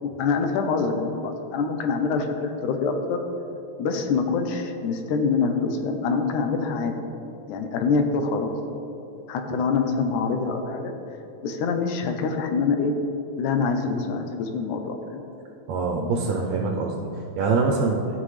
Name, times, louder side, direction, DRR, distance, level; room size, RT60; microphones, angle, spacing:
voice 1, 0.0-3.2 3.8-6.9 7.5-8.5 9.3-10.9 11.4-12.9 13.4-15.2, left 4 dB, 90° left, 5 dB, 2.2 m, -25 dB
voice 2, 15.7-17.1 17.4-18.0, right 4 dB, 75° right, 0 dB, 1.8 m, -24 dB
13.5 x 5.9 x 3.2 m, 2.9 s
omnidirectional pair, 3.4 m